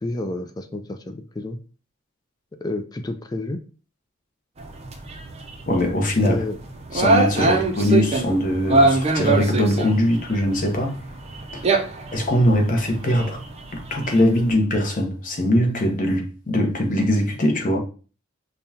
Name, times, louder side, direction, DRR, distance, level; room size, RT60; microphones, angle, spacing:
voice 1, 0.0-1.6 2.6-3.6 6.2-6.6 7.4-7.5, left 2 dB, 20° left, 0.4 m, -29 dB
sound 1, 4.6-14.5, right 3 dB, 30° right, 0.6 m, -24 dB
voice 2, 5.7-6.3 6.9-11.0 11.5-11.6 12.1-13.4 13.9-17.8, left 1 dB, 45° left, 0.9 m, -21 dB
5.3 x 2.3 x 2.7 m
head